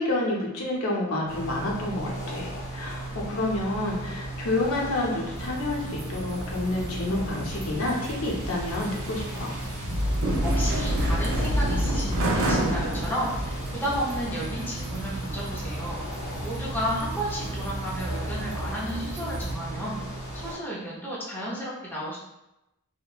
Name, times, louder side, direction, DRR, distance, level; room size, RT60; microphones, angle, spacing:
voice 1, 0.0-9.5, left 2 dB, 80° left, -2 dB, 0.6 m, -29 dB
sound 1, 1.3-20.5, right 1 dB, 50° left, 1.4 m, -36 dB
sound 2, 5.4-19.5, right 1 dB, 70° right, 0.4 m, -30 dB
voice 2, 10.4-16.0 16.4-20.0 20.3-22.2, equal, 10° left, -7 dB, 0.5 m, -32 dB
2.7 x 2.1 x 2.3 m, 0.92 s
head